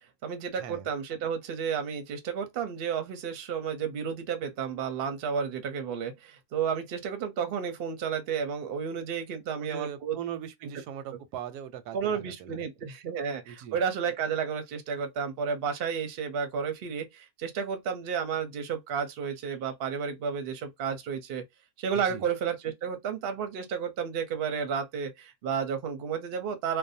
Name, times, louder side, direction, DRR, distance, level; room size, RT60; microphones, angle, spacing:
voice 1, 0.2-10.2 11.9-21.4 21.8-26.8, right 7 dB, 55° right, 0.7 m, -32 dB
voice 2, 9.6-12.6 13.4-13.8 21.9-22.3, right 10 dB, 90° right, 1.1 m, -40 dB
2.6 x 2.1 x 2.6 m
omnidirectional pair, 1.6 m